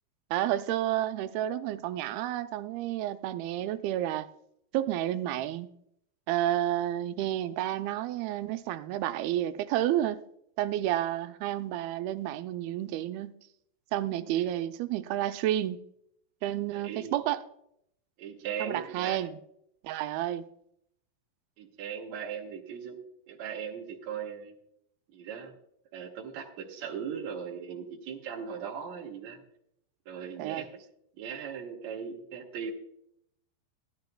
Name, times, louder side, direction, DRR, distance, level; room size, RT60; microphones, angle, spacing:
voice 1, 0.3-4.3 4.7-5.7 6.3-10.2 10.6-13.4 13.9-15.8 16.4-17.4 18.6-19.4 19.8-20.5 30.4-30.6, right 13 dB, 85° right, 10 dB, 2.5 m, -30 dB
voice 2, 16.7-17.1 18.2-19.2 21.6-23.0 23.3-24.6 25.1-25.5 25.9-29.4 30.1-30.7 31.2-32.7, right 7 dB, 60° right, -2 dB, 2.2 m, -38 dB
15.5 x 12.0 x 2.3 m, 0.73 s
omnidirectional pair, 4.3 m